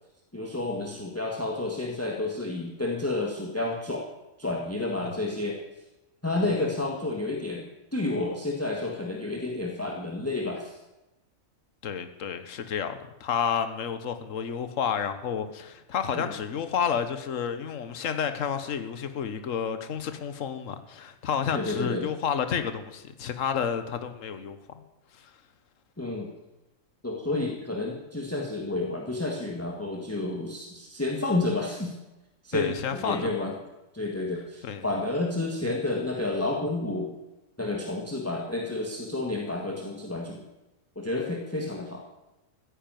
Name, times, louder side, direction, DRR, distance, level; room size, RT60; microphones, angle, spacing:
voice 1, 0.3-4.0 4.4-5.6 6.2-10.8 16.1-16.3 21.5-22.1 26.0-26.3 27.0-31.9 32.4-33.5 33.9-37.1 37.6-40.4 40.9-42.0, left 2 dB, 10° left, 1 dB, 1.7 m, -30 dB
voice 2, 11.8-24.6 25.1-25.3 32.5-33.5 34.6-34.8, left 7 dB, 70° left, 9 dB, 1.5 m, -30 dB
15.5 x 10.0 x 9.1 m, 1.0 s
omnidirectional pair, 1.4 m